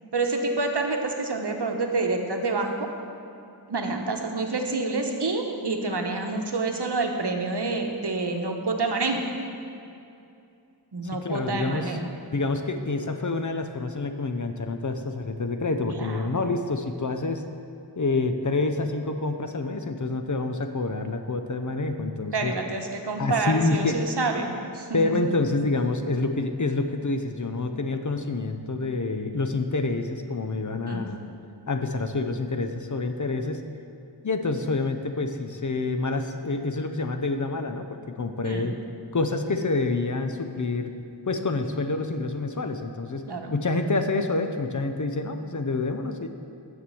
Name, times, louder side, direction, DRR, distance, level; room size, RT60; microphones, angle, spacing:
voice 1, 0.1-2.9 3.7-9.2 10.9-12.1 15.9-16.3 22.3-25.1 30.9-31.1 38.4-38.7 43.3-43.5, right 3 dB, 65° right, 3 dB, 1.0 m, -28 dB
voice 2, 11.1-12.0 12.3-17.4 18.0-22.5 23.2-24.0 24.9-31.2 31.7-33.6 34.2-38.7 39.1-40.9 41.3-43.2 43.5-46.3, left 3 dB, 45° left, 7 dB, 0.7 m, -27 dB
7.1 x 6.2 x 7.7 m, 2.6 s
wide cardioid pair, 45°, 43 cm